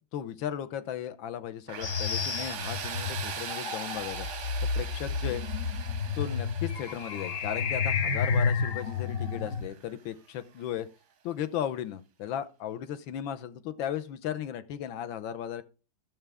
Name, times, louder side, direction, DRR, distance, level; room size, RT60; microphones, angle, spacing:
voice 1, 0.1-4.3 4.7-5.4 6.1-10.9 11.2-15.6, left 10 dB, 70° left, 1.5 m, -36 dB
Tools, 1.7-10.4, right 7 dB, 55° right, 0.8 m, -41 dB
sound 1, 1.8-9.6, left 5 dB, 55° left, 0.9 m, -31 dB
12.5 x 7.2 x 3.4 m
omnidirectional pair, 2.3 m